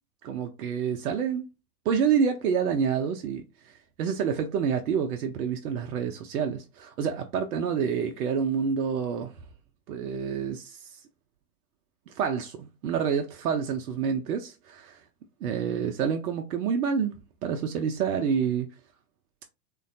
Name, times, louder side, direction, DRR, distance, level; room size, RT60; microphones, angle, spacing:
voice 1, 0.2-1.4 1.9-9.3 9.9-10.9 12.1-15.0 15.4-17.1 17.4-18.7, right 7 dB, 70° right, 0.7 m, -28 dB
3.1 x 2.2 x 2.6 m
hypercardioid pair, 95°, 46 cm